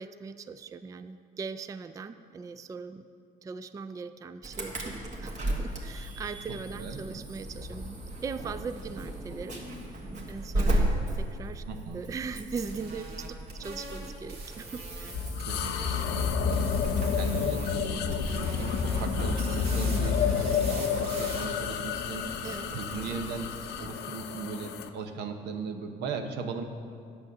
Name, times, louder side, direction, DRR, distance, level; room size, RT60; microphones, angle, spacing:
voice 1, 0.0-3.1 3.4-9.6 9.9-11.6 11.9-15.3 22.4-22.7, right 5 dB, 20° right, 11 dB, 0.3 m, -40 dB
Insect / Alarm, 4.4-23.9, right 1 dB, 45° right, 1.7 m, -36 dB
voice 2, 6.5-7.0 11.6-12.0 15.5-16.7 17.1-22.3 22.7-23.5 23.8-26.6, right 5 dB, 85° right, 6 dB, 0.9 m, -38 dB
sound 1, 12.4-16.2 16.5-17.9 18.1-21.4, right 2 dB, 65° right, 1.9 m, -43 dB
sound 2, 15.1-24.9, left 6 dB, 80° left, 0.6 m, -30 dB
9.1 x 7.0 x 6.5 m, 2.3 s
cardioid pair, 110°, 17 cm